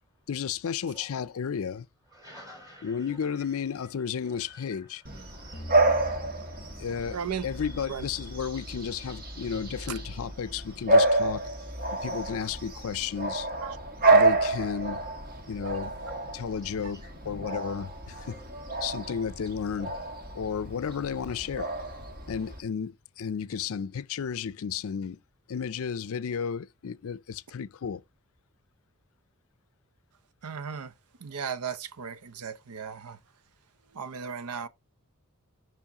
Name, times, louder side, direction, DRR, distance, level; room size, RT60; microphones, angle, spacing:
voice 1, 0.3-1.9 2.8-5.0 6.8-7.2 7.4-11.5 12.0-13.5 14.1-15.0 15.5-15.9 16.3-18.4 18.8-19.9 20.3-21.7 22.3-25.2 25.5-28.0, left 7 dB, 65° left, 0.4 m, -33 dB
voice 2, 2.1-12.1 16.6-17.2, equal, 15° right, 3.6 m, -55 dB
Bark / Bird vocalization bird call bird song, 5.1-22.6, right 2 dB, 40° right, 1.4 m, -29 dB
sound 1, 5.5-8.5, equal, 25° left, 0.8 m, -43 dB
voice 3, 7.1-7.5 7.9-8.1 9.9-10.0 13.6-13.8 14.1-14.3 15.7-15.9 16.8-16.9 30.4-30.9 31.2-33.2 33.9-34.7, right 6 dB, 85° right, 0.7 m, -36 dB
7.1 x 5.6 x 2.9 m
head